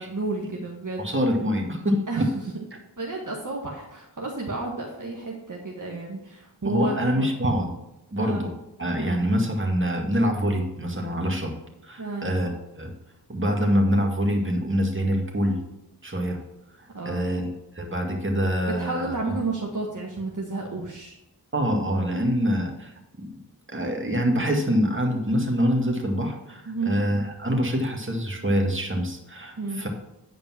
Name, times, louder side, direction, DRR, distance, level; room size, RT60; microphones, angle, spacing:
voice 1, 0.0-1.1 2.1-2.6 3.0-7.2 8.2-8.5 8.9-9.2 12.0-12.3 16.9-17.3 18.8-21.1 26.6-26.9 29.6-29.8, right 3 dB, 45° right, -2 dB, 1.7 m, -31 dB
voice 2, 1.0-2.3 6.6-7.7 8.1-8.5 8.8-11.5 11.8-12.9 13.3-15.6 16.0-16.4 16.8-17.5 17.7-19.2 21.5-23.3 23.7-29.9, equal, 30° right, 1 dB, 2.1 m, -25 dB
9.4 x 5.1 x 6.0 m, 0.87 s
cardioid pair, 40°, 42 cm